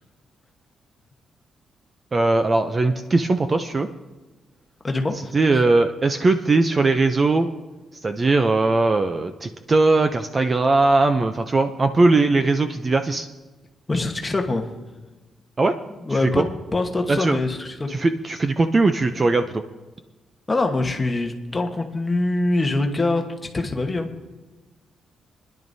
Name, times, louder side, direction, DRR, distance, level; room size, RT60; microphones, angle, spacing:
voice 1, 2.1-3.9 5.3-7.5 8.0-13.3 15.6-15.7 16.2-16.5 17.1-17.4 17.9-19.6, right 3 dB, 25° right, 8 dB, 0.4 m, -19 dB
voice 2, 4.8-5.6 13.9-14.6 16.0-16.4 16.7-17.9 20.5-24.1, left 2 dB, 15° left, 3 dB, 1.1 m, -24 dB
28.0 x 10.5 x 2.7 m, 1.2 s
wide cardioid pair, 170°, 0 cm